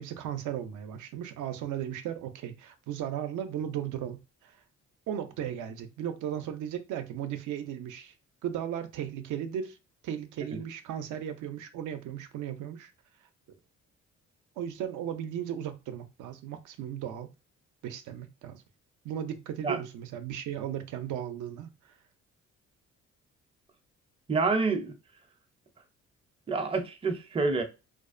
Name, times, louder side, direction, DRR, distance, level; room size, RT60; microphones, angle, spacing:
voice 1, 0.0-4.6 5.1-8.1 8.4-9.8 10.0-12.9 14.6-17.3 17.8-18.6 19.0-21.9, right 10 dB, 75° right, 0.5 m, -36 dB
voice 2, 24.3-24.9 26.5-27.6, right 4 dB, 20° right, 0.5 m, -27 dB
2.5 x 2.0 x 2.4 m
cardioid pair, 90°, 30 cm